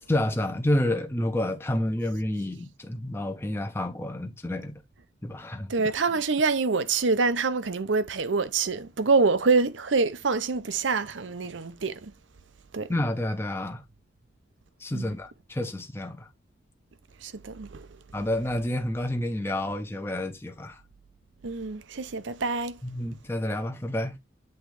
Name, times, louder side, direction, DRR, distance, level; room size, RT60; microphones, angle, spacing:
voice 1, 0.1-4.8 5.2-5.7 12.9-13.8 14.8-16.3 18.1-20.8 22.8-24.1, left 1 dB, 10° left, 0.7 m, -29 dB
voice 2, 5.7-12.1 12.7-12.9 14.9-15.1 17.2-17.9 21.4-22.8, right 4 dB, 75° right, 0.7 m, -26 dB
7.9 x 3.7 x 3.3 m
head